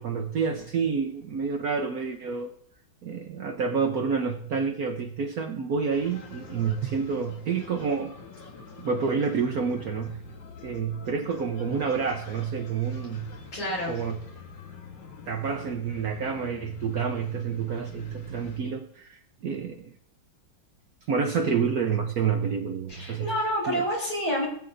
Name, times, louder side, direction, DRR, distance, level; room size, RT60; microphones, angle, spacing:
voice 1, 0.0-2.5 3.0-8.1 8.8-10.2 10.6-13.3 13.9-14.2 15.3-19.2 19.4-19.9 21.1-23.3 23.7-23.8, right 6 dB, 60° right, 3 dB, 1.0 m, -28 dB
sound 1, 5.9-18.6, left 4 dB, 60° left, 1.8 m, -45 dB
voice 2, 13.5-13.9 21.4-21.6 22.9-24.5, equal, 85° left, -3 dB, 5.6 m, -28 dB
18.5 x 8.4 x 2.6 m, 0.65 s
omnidirectional pair, 2.3 m